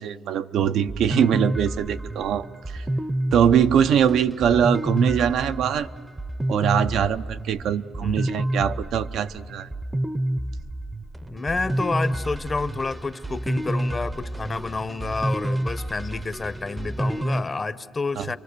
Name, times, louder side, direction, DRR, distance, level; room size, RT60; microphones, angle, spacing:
voice 1, 0.0-2.9 3.3-5.9 6.5-9.7 18.2-18.3, right 8 dB, 85° right, 10 dB, 0.6 m, -22 dB
sound 1, 0.9-17.4, right 1 dB, 15° right, 0.6 m, -29 dB
voice 2, 11.3-18.4, left 3 dB, 25° left, 13 dB, 0.7 m, -29 dB
29.5 x 24.5 x 6.7 m, 2.1 s
cardioid pair, 145°, 0 cm